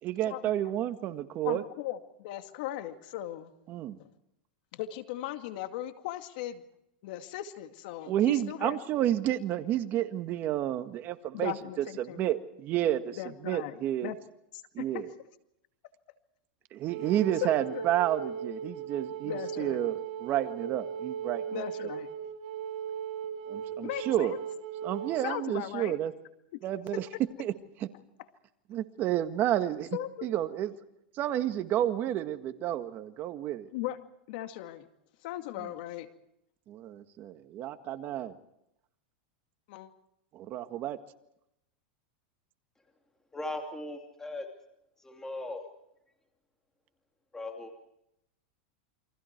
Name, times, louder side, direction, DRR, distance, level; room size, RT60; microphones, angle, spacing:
voice 1, 0.0-1.6 3.7-4.0 8.1-14.1 14.7-15.1 16.7-21.6 23.5-24.4 24.8-26.1 26.6-27.1 27.4-27.5 27.8-27.9 28.7-30.7 31.1-33.7 35.6-35.7 36.7-38.4 40.3-41.0, right 12 dB, 35° right, 9 dB, 1.8 m, -31 dB
voice 2, 1.4-3.5 4.7-6.6 7.0-8.8 11.3-12.2 13.2-14.2 14.5-15.0 17.4-17.9 19.2-19.8 21.5-22.1 23.8-24.4 25.2-26.0 29.9-30.3 33.7-34.0 34.3-34.9 35.2-36.1 39.7-39.9, left 13 dB, 60° left, 8 dB, 2.3 m, -38 dB
Wind instrument woodwind instrument, 16.9-25.3, right 7 dB, 55° right, 5.5 m, -38 dB
voice 3, 43.3-44.5 45.0-45.7 47.3-47.9, left 2 dB, 10° left, 3 dB, 2.7 m, -38 dB
29.0 x 24.0 x 4.7 m, 0.82 s
supercardioid pair, 140°, 5 cm